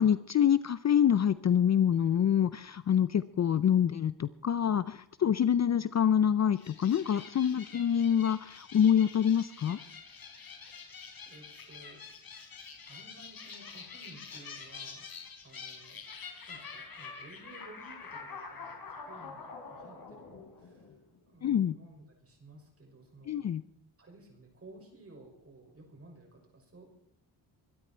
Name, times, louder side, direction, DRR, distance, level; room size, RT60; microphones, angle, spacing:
voice 1, 0.0-9.8 21.4-21.8 23.3-23.6, left 9 dB, 40° left, 15 dB, 0.5 m, -26 dB
sound 1, 6.5-21.2, left 5 dB, 55° left, 4.1 m, -47 dB
voice 2, 10.8-12.0 12.9-15.1 15.4-16.0 16.5-20.9 21.3-23.5 24.0-26.9, right 2 dB, 35° right, 2 dB, 6.2 m, -55 dB
23.5 x 12.5 x 4.5 m, 0.68 s
cardioid pair, 105°, 42 cm